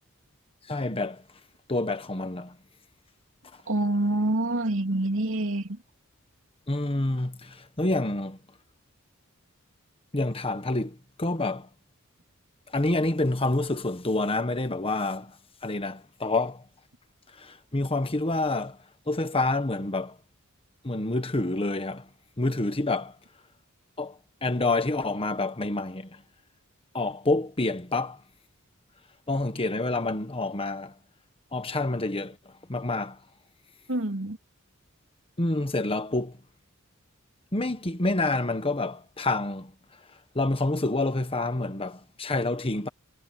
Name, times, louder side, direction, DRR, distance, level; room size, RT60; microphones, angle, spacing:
voice 1, 0.7-1.2 1.7-2.5 6.7-8.4 10.1-11.7 12.7-15.4 15.6-16.6 17.4-18.8 19.1-20.2 20.8-22.1 22.4-23.1 24.0-26.2 26.9-28.2 29.3-30.9 31.5-33.2 35.4-36.4 37.5-39.7 40.3-42.9, left 2 dB, 25° left, 1.4 m, -28 dB
voice 2, 3.7-5.8 33.9-34.4, right 1 dB, 65° right, 3.0 m, -26 dB
head